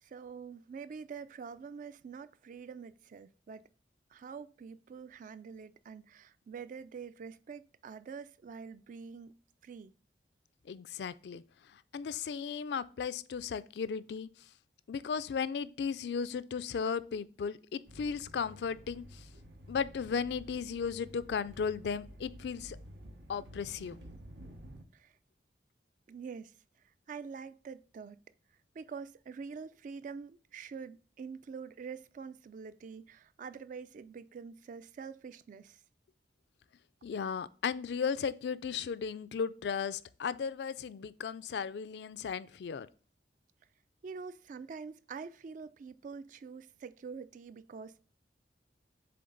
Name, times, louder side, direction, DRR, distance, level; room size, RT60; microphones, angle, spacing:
voice 1, 0.0-3.7 4.1-9.4 9.6-9.9 24.9-25.1 26.1-26.5 27.1-28.2 28.7-35.8 44.0-48.0, right 5 dB, 45° right, 0.3 m, -46 dB
voice 2, 10.7-11.4 11.9-14.3 14.9-19.2 19.7-22.8 23.3-24.0 37.0-42.9, left 6 dB, 65° left, 0.3 m, -35 dB
sound 1, 17.9-24.8, equal, 85° right, 1.1 m, -51 dB
7.8 x 3.3 x 3.8 m
head